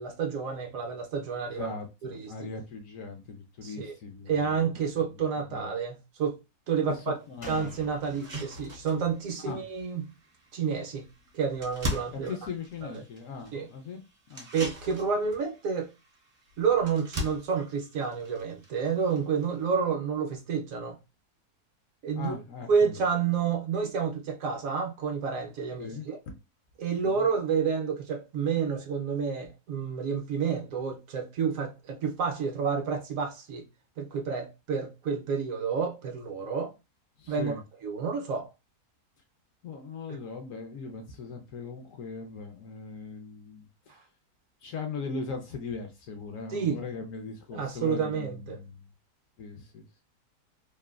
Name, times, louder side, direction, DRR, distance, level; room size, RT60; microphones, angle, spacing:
voice 1, 0.0-1.7 2.0-2.3 3.6-3.9 4.3-6.4 6.7-7.2 7.4-10.1 10.5-11.0 11.3-12.3 12.8-12.9 13.5-13.7 14.5-15.9 16.6-21.0 22.0-22.4 22.7-26.2 26.8-33.6 34.0-36.7 37.3-37.5 37.8-38.5 46.5-46.8 47.5-48.6, right 6 dB, 70° right, 0.9 m, -29 dB
voice 2, 1.4-4.6 5.1-5.2 5.5-5.7 6.8-7.7 9.4-9.6 12.1-14.0 14.3-14.5 22.1-23.1 25.8-26.1 27.0-27.3 37.2-37.6 39.6-44.0 44.6-48.9 49.4-50.0, left 4 dB, 70° left, 0.8 m, -39 dB
sound 1, 7.0-7.1 7.6-7.7 8.0-19.7, equal, 45° right, 0.5 m, -41 dB
Slam, 7.4-10.9 11.2-11.3, left 1 dB, 45° left, 0.4 m, -51 dB
3.2 x 2.1 x 2.3 m
omnidirectional pair, 1.7 m